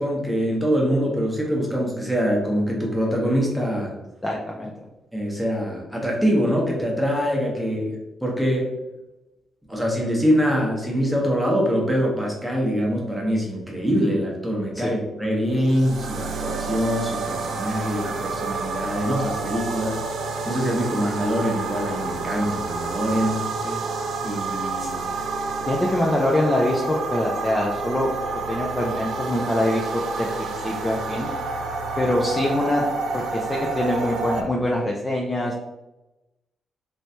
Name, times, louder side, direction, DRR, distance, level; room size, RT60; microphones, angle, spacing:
voice 1, 0.0-3.9 5.1-8.7 9.7-20.0 20.5-23.4 24.2-25.0, equal, ahead, -2 dB, 0.9 m, -24 dB
voice 2, 4.2-4.7 14.7-15.0 23.6-23.8 24.8-24.9 25.7-28.1 28.5-31.3 32.0-32.8 33.1-35.6, left 1 dB, 15° left, -2 dB, 0.4 m, -24 dB
sound 1, 15.5-34.4, right 3 dB, 70° right, 0.5 m, -29 dB
3.3 x 3.0 x 2.7 m, 1.0 s
cardioid pair, 140°, 0 cm